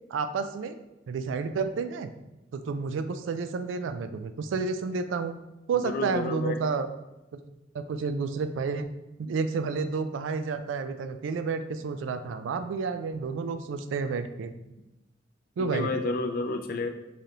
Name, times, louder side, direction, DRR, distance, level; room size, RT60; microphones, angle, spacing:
voice 1, 0.1-0.8 1.1-2.1 2.5-5.3 5.7-6.9 7.7-8.9 9.2-14.5 15.6-15.9, right 5 dB, 85° right, 9 dB, 0.3 m, -30 dB
voice 2, 5.8-6.6 15.6-16.9, left 3 dB, 50° left, 5 dB, 0.4 m, -30 dB
3.8 x 3.3 x 2.8 m, 0.98 s
head